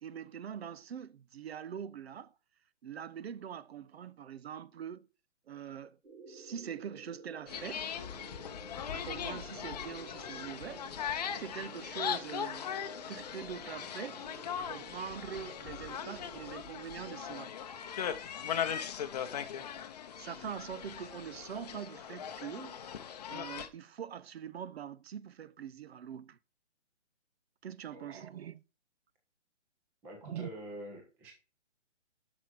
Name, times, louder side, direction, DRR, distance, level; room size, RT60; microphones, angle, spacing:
voice 1, 0.0-2.3 2.8-5.1 5.5-6.0 6.3-7.9 8.9-10.9 11.4-12.7 13.1-14.2 14.5-17.5 20.2-22.8 23.3-26.4 27.6-28.6 30.2-30.5, right 8 dB, 60° right, 0.6 m, -43 dB
sound 1, 6.0-16.6, right 3 dB, 80° right, 3.9 m, -53 dB
sound 2, 7.5-23.7, left 8 dB, 35° left, 0.7 m, -39 dB
voice 2, 27.9-28.2 30.0-31.3, right 1 dB, 5° right, 0.5 m, -46 dB
7.4 x 6.1 x 4.7 m
hypercardioid pair, 150°, 36 cm